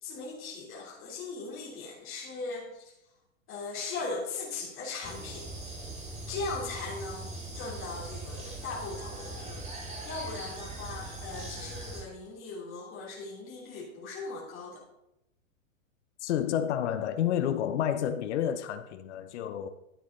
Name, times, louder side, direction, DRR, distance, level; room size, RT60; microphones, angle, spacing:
voice 1, 0.0-2.9 3.5-5.5 6.3-14.8, left 3 dB, 30° left, 2.9 m, -39 dB
sound 1, 5.0-12.0, right 2 dB, 15° right, 2.5 m, -41 dB
voice 2, 16.2-19.7, left 10 dB, 55° left, 0.8 m, -30 dB
10.5 x 7.9 x 3.8 m
hypercardioid pair, 115°, 41 cm